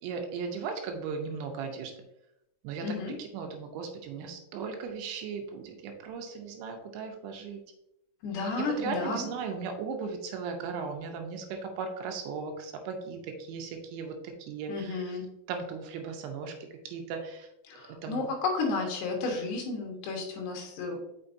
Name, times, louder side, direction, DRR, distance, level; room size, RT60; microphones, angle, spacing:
voice 1, 0.0-1.9 2.6-7.6 8.6-15.2 15.5-16.5 16.9-17.5 17.9-18.3, right 5 dB, 80° right, 4 dB, 3.0 m, -37 dB
voice 2, 2.8-3.1 8.2-9.3 14.7-15.2 17.7-21.0, left 3 dB, 70° left, 1 dB, 3.1 m, -32 dB
6.5 x 5.8 x 2.6 m, 0.85 s
omnidirectional pair, 5.5 m